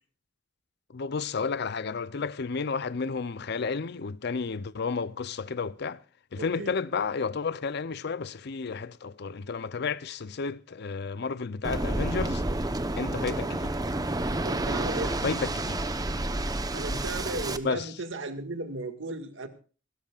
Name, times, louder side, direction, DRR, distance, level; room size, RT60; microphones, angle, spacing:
voice 1, 0.9-6.0 6.3-12.4 13.0-13.7 15.2-15.8 17.6-17.9, left 5 dB, 60° left, 0.6 m, -32 dB
voice 2, 6.4-6.7 14.4-15.2 16.7-19.5, right 2 dB, 80° right, 2.0 m, -35 dB
Waves surf, 11.6-17.6, right 2 dB, 20° right, 0.9 m, -30 dB
27.5 x 13.0 x 2.4 m
head